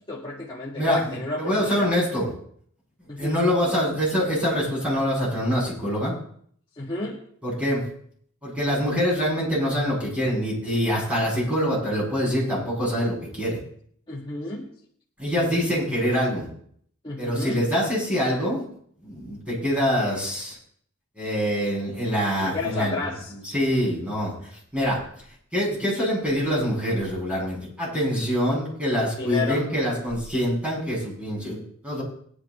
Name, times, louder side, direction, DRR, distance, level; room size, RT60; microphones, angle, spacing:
voice 1, 0.1-1.9 3.1-3.5 6.8-7.2 14.1-14.7 17.0-17.6 22.4-23.3 29.2-29.7, left 3 dB, 20° left, -6 dB, 2.0 m, -31 dB
voice 2, 0.7-2.3 3.2-6.1 7.4-7.8 8.4-13.6 15.2-16.5 17.2-18.6 19.0-20.6 21.2-23.0 23.4-25.0 25.5-32.0, equal, 5° right, -6 dB, 7.6 m, -25 dB
22.0 x 10.5 x 3.3 m, 0.63 s
head